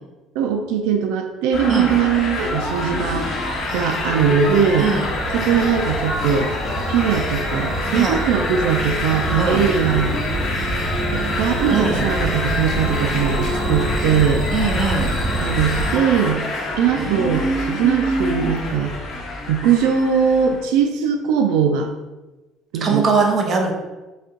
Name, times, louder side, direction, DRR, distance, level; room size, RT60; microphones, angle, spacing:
voice 1, 0.4-3.3 3.7-4.9 5.3-6.5 6.9-10.1 11.1-14.5 15.4-16.4 16.8-18.9 19.5-21.9 22.7-23.0, right 7 dB, 85° right, 4 dB, 0.4 m, -20 dB
sound 1, 1.5-20.6, left 2 dB, 35° left, 1.0 m, -27 dB
sound 2, 2.4-15.9, right 2 dB, 10° right, 1.5 m, -27 dB
voice 2, 11.7-12.0 14.5-15.1 17.0-18.5 22.8-23.7, right 4 dB, 35° right, 1 dB, 0.8 m, -22 dB
4.1 x 3.4 x 3.8 m, 1.1 s
cardioid pair, 155°, 0 cm